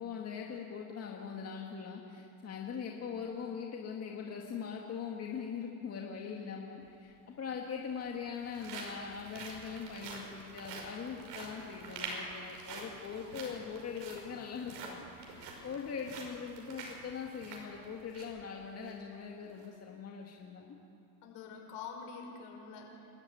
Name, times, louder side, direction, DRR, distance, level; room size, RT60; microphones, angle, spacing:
voice 1, 0.0-20.8, left 6 dB, 30° left, 0 dB, 2.0 m, -41 dB
sound 1, 6.8-6.9 7.8-18.4 18.8-18.9 19.4-19.7, right 3 dB, 85° right, 5.7 m, -46 dB
voice 2, 13.2-13.6 21.2-23.1, left 5 dB, 60° left, 2 dB, 5.6 m, -46 dB
28.5 x 13.5 x 9.4 m, 2.8 s
supercardioid pair, 125°, 48 cm